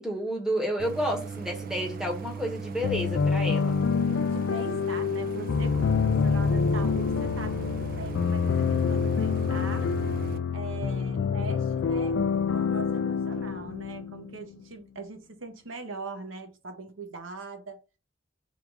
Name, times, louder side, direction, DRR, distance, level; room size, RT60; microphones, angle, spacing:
voice 1, 0.0-3.8, equal, 5° right, 0.9 m, -30 dB
Idling, 0.8-10.4, right 5 dB, 45° right, 0.4 m, -38 dB
sound 1, 2.8-14.5, left 6 dB, 75° left, 0.3 m, -27 dB
voice 2, 4.1-9.9 10.5-17.8, right 3 dB, 85° right, 1.0 m, -41 dB
3.6 x 2.4 x 4.5 m
head